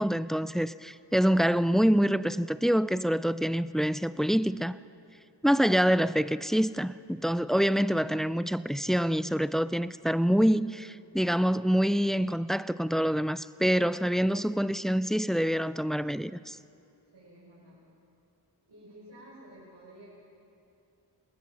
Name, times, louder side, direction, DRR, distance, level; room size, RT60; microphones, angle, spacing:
voice 1, 0.0-4.8 5.4-16.6, equal, ahead, 15 dB, 0.4 m, -26 dB
voice 2, 17.1-17.8 18.7-20.1, right 1 dB, 85° right, -8 dB, 5.8 m, -52 dB
27.5 x 20.0 x 5.9 m, 2.6 s
wide cardioid pair, 70°, 41 cm